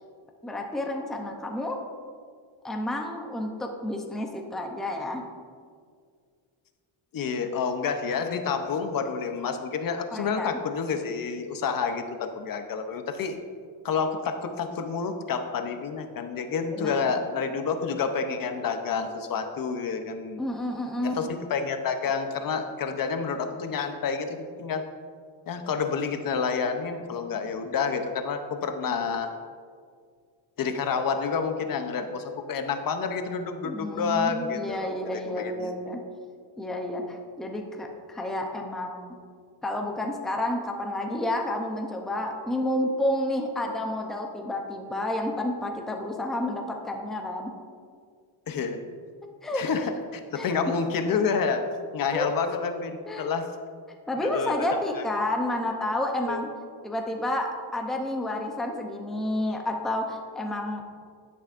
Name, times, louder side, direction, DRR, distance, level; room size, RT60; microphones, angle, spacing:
voice 1, 0.4-1.8 2.6-5.2 10.1-10.5 16.7-17.1 20.4-21.3 33.6-36.0 36.6-39.1 39.6-47.5 49.4-49.6 50.3-50.5 52.1-52.3 53.1-53.3 54.1-56.5 56.8-60.8, left 1 dB, ahead, 2 dB, 0.6 m, -30 dB
voice 2, 7.1-13.3 13.8-20.4 21.0-24.8 25.5-29.3 30.6-35.7 48.5-48.8 49.5-51.6 51.9-53.5 54.2-55.0 56.3-56.4, left 5 dB, 45° left, 7 dB, 0.7 m, -29 dB
11.0 x 9.9 x 2.5 m, 2.1 s
cardioid pair, 170°, 50 cm